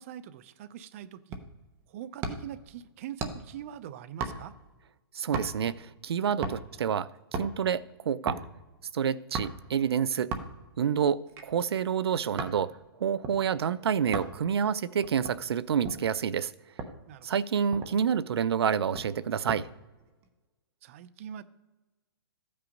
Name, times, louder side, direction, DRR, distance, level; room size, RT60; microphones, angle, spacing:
voice 1, 0.0-1.4 1.9-4.5 17.1-17.3 20.8-21.4, right 10 dB, 35° right, 0.6 m, -43 dB
sound 1, 1.3-1.6 2.2-2.6 3.2-3.6 4.2-4.7 5.3-5.7 6.4-6.8 7.2-7.6 8.3-8.5 9.3-9.7 10.3-10.7 11.3-12.6 13.2-13.4 14.1-14.4 15.0-16.1 16.8-17.0 17.4-17.5 17.7-18.1 18.9-19.6 20.0-20.3, right 4 dB, 20° right, 0.9 m, -36 dB
voice 2, 5.1-8.4 8.9-10.3 10.8-12.7 13.0-16.5 17.2-19.7, right 7 dB, 80° right, 0.5 m, -28 dB
14.0 x 8.7 x 5.2 m
hypercardioid pair, 165°, 13 cm